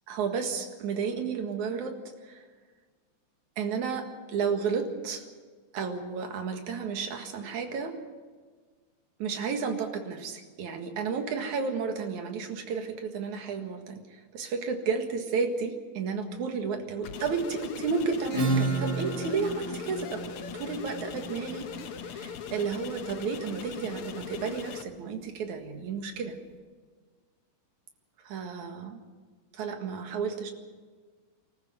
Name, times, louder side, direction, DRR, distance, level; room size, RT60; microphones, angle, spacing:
voice 1, 0.1-2.0 2.2-2.4 3.6-5.2 5.7-8.0 9.2-20.3 20.5-21.7 22.0-26.4 28.3-29.0 29.5-30.5, right 5 dB, 60° right, 5 dB, 3.0 m, -32 dB
sound 1, 17.0-24.8, left 7 dB, 85° left, 1.2 m, -40 dB
Acoustic guitar / Strum, 18.3-23.7, right 3 dB, 30° right, 3.4 m, -33 dB
24.5 x 14.0 x 8.1 m, 1.5 s
omnidirectional pair, 4.1 m